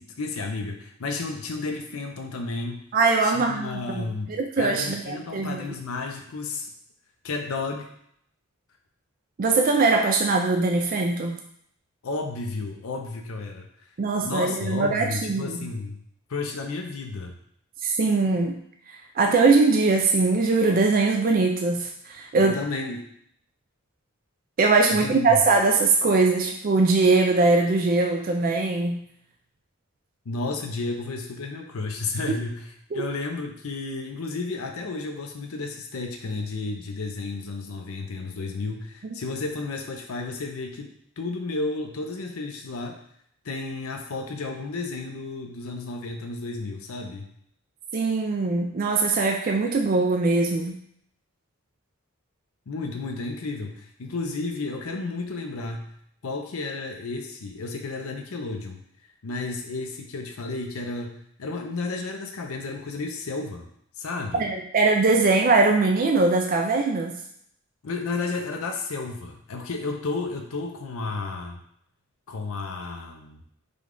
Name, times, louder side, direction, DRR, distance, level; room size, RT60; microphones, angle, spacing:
voice 1, 0.0-2.8 3.2-6.7 7.2-7.9 12.0-13.7 14.2-16.0 16.3-17.3 22.4-23.0 24.9-25.4 30.3-43.0 43.4-47.3 52.7-55.9 56.2-58.8 59.2-63.6 64.0-64.5 67.8-71.6 72.3-73.4, left 3 dB, 70° left, 2 dB, 0.6 m, -32 dB
voice 2, 2.9-4.1 4.4-5.6 9.4-11.4 14.0-15.7 17.8-18.6 18.9-22.5 24.6-29.0 32.9-33.1 47.9-50.8 64.4-67.2, right 3 dB, 40° right, 2 dB, 0.3 m, -21 dB
5.0 x 2.3 x 3.7 m, 0.69 s
head